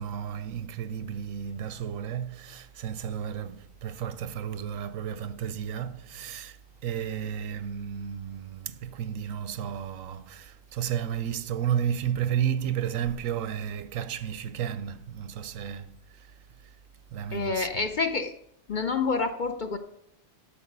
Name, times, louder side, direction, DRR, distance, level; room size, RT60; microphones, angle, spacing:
voice 1, 0.0-6.6 6.8-15.9 16.1-16.3 17.1-17.7, right 9 dB, 90° right, 1.1 m, -32 dB
voice 2, 17.3-18.3 18.7-19.8, left 4 dB, 55° left, 0.6 m, -28 dB
12.0 x 7.1 x 5.3 m
omnidirectional pair, 1.3 m